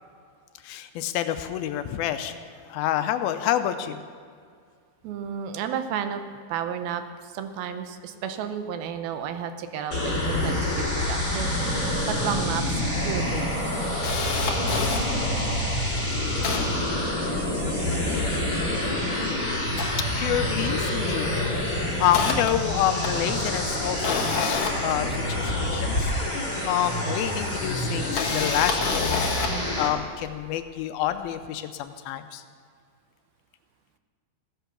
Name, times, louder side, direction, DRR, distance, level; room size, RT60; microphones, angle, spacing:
voice 1, 0.6-2.3 2.7-4.0 20.2-26.1 26.7-29.2 29.8-32.4, left 11 dB, 80° left, 9 dB, 2.4 m, -28 dB
voice 2, 5.0-6.2 6.5-12.6 13.0-13.6, right 8 dB, 80° right, 8 dB, 2.6 m, -32 dB
sound 1, 9.9-29.9, left 1 dB, 25° left, 3.4 m, -27 dB
Camera, 12.4-12.5 12.8-12.9 13.4-15.0 15.6-15.7 16.0-17.6 18.0-19.2 19.6-20.8 21.0-21.3 21.7-25.8 26.8-26.9 27.9-29.7 30.2-30.4, left 5 dB, 60° left, 1.5 m, -30 dB
15.0 x 10.5 x 6.8 m, 2.1 s
omnidirectional pair, 4.4 m